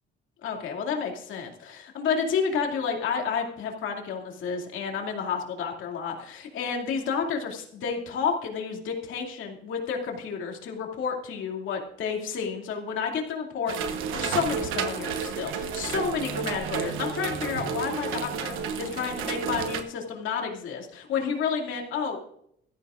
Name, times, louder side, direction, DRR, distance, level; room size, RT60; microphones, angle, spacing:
voice 1, 0.4-22.2, left 6 dB, 80° left, 1 dB, 2.5 m, -30 dB
sound 1, 13.7-19.8, right 6 dB, 90° right, 1.2 m, -31 dB
16.5 x 13.5 x 2.5 m, 0.71 s
cardioid pair, 90°, 20 cm